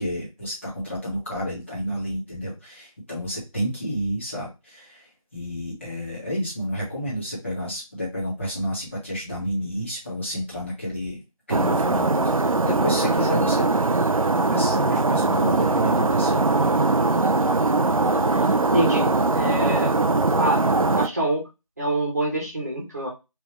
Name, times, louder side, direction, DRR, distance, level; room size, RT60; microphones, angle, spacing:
voice 1, 0.0-11.2 11.5-13.7 14.5-16.8, equal, 20° left, -6 dB, 1.7 m, -30 dB
sound 1, 11.5-21.1, right 3 dB, 70° right, 0.6 m, -21 dB
voice 2, 18.7-19.9 20.4-20.6 20.9-21.4 21.8-23.1, right 1 dB, 30° right, -2 dB, 1.5 m, -25 dB
4.5 x 3.5 x 3.2 m, 0.25 s
figure-of-eight pair, 170°, 18 cm